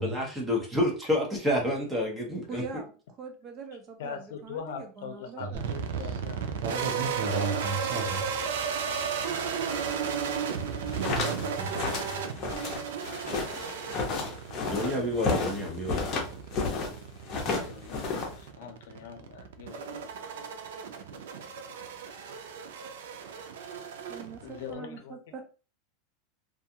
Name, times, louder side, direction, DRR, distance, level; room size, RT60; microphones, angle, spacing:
voice 1, 0.0-2.6 14.6-16.2, left 1 dB, 5° right, -2 dB, 0.8 m, -29 dB
voice 2, 2.5-2.9 3.2-5.7 24.1-25.4, right 6 dB, 30° right, 4 dB, 0.5 m, -42 dB
voice 3, 4.0-6.4 17.5-20.1 24.4-25.2, left 6 dB, 80° left, 7 dB, 0.5 m, -42 dB
voice 4, 5.4-6.2 6.6-8.4 10.9-12.8, right 4 dB, 60° right, 3 dB, 0.8 m, -36 dB
sound 1, 5.5-24.7, right 6 dB, 90° right, 0.4 m, -35 dB
sound 2, 10.7-16.9 17.2-18.5, left 4 dB, 30° left, 0.7 m, -32 dB
2.4 x 2.3 x 2.7 m, 0.35 s
supercardioid pair, 155°, 0 cm